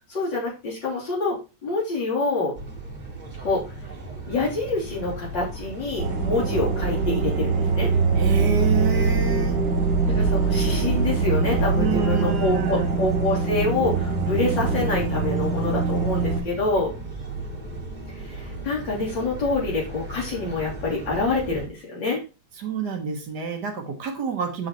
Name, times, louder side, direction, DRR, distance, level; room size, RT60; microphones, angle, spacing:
voice 1, 0.1-2.5 3.4-3.6 4.3-7.9 10.1-16.9 18.2-22.2, left 3 dB, 80° left, -4 dB, 3.7 m, -26 dB
sound 1, 2.5-21.7, right 1 dB, 25° right, 1.4 m, -36 dB
sound 2, 6.0-16.4, right 4 dB, 85° right, 3.7 m, -23 dB
voice 2, 8.2-9.6 11.7-12.9 22.6-24.7, right 6 dB, 65° right, 5 dB, 1.8 m, -28 dB
12.0 x 4.0 x 3.0 m, 0.29 s
omnidirectional pair, 1.9 m